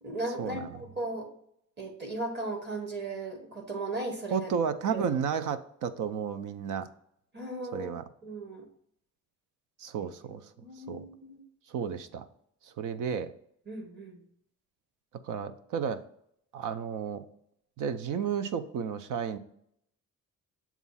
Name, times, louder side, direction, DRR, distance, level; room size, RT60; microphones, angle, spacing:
voice 1, 0.0-1.3 1.8-4.5 4.9-5.1 7.3-7.9 8.2-8.7 10.0-10.1 10.6-11.4 13.7-14.2, right 2 dB, 35° right, 2 dB, 1.2 m, -36 dB
voice 2, 4.3-6.9 7.7-8.0 9.8-10.5 10.9-11.0 11.7-12.3 12.6-13.3 15.2-16.0 16.5-17.3 17.8-19.4, right 7 dB, 85° right, 11 dB, 0.6 m, -32 dB
7.1 x 2.4 x 5.4 m, 0.70 s
cardioid pair, 140°, 30 cm